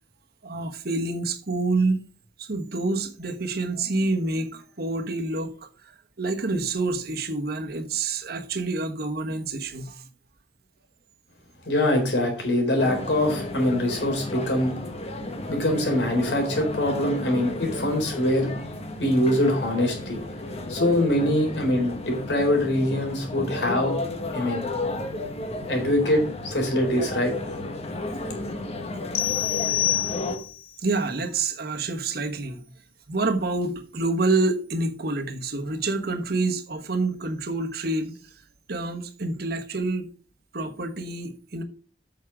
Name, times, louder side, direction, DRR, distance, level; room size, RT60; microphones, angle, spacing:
voice 1, 0.4-2.0 2.4-10.0 30.8-32.6 33.1-38.2 38.7-40.1 40.5-41.6, right 3 dB, 60° right, 1.2 m, -27 dB
voice 2, 11.6-14.7 15.5-18.5 19.0-20.2 20.7-24.0 24.3-24.7 25.7-27.6, left 1 dB, 85° left, 3.9 m, -23 dB
sound 1, 12.8-30.4, left 2 dB, 35° left, 1.3 m, -33 dB
sound 2, 29.1-30.7, left 13 dB, 60° left, 1.0 m, -26 dB
8.6 x 6.4 x 4.8 m
head